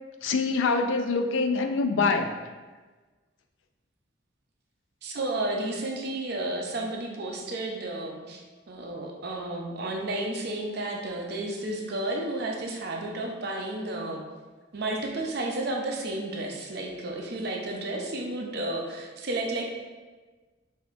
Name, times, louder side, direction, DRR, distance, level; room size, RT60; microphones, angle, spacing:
voice 1, 0.2-2.3, left 4 dB, 85° left, 5 dB, 0.4 m, -25 dB
voice 2, 5.0-8.4 8.7-14.2 14.7-19.7, right 2 dB, 55° right, 0 dB, 0.6 m, -32 dB
6.4 x 2.7 x 2.5 m, 1.3 s
head